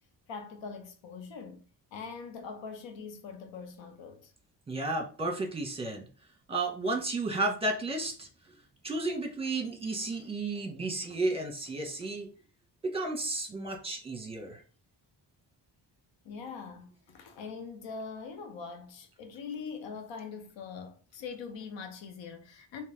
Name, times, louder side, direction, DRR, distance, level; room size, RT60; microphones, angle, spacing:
voice 1, 0.3-1.6 1.9-4.3 16.2-22.8, left 5 dB, 90° left, 0.8 m, -42 dB
voice 2, 4.7-6.1 6.5-8.3 8.8-12.3 12.8-14.6, right 2 dB, 15° right, 1.2 m, -32 dB
3.2 x 3.0 x 3.4 m
cardioid pair, 90°, 43 cm